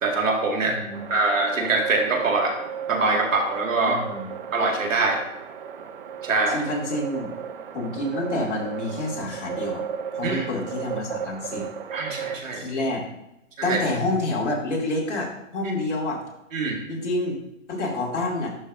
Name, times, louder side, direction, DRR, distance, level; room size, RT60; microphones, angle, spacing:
voice 1, 0.0-0.8 1.1-2.6 2.9-4.0 4.5-5.2 6.2-6.6 10.2-10.5 11.9-12.6 13.6-13.8 15.6-15.7 16.5-16.8, right 3 dB, 75° right, 0 dB, 2.4 m, -23 dB
voice 2, 0.6-1.0 3.9-4.3 6.5-7.3 7.7-9.8 10.1-11.7 12.5-13.0 13.6-15.3 15.5-16.2 16.9-17.4 17.7-18.5, left 2 dB, 60° left, -2 dB, 2.7 m, -28 dB
sound 1, 0.9-12.4, right 7 dB, 45° right, 0.7 m, -35 dB
11.5 x 5.1 x 2.8 m, 0.86 s
hypercardioid pair, 145°, 40 cm